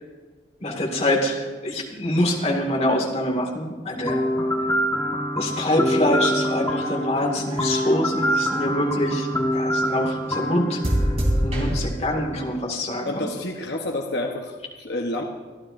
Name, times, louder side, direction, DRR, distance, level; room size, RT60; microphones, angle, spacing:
voice 1, 0.6-4.2 5.4-9.3 9.5-11.1 11.4-13.3, left 1 dB, 35° left, 0 dB, 2.1 m, -25 dB
sound 1, 4.0-11.9, equal, 15° left, 1.1 m, -25 dB
sound 2, 5.9-9.0 9.5-10.1 10.8-11.8, equal, 35° right, 3.2 m, -27 dB
voice 2, 13.0-15.2, left 2 dB, 75° left, 2 dB, 1.1 m, -29 dB
25.5 x 12.0 x 2.6 m, 1.4 s
head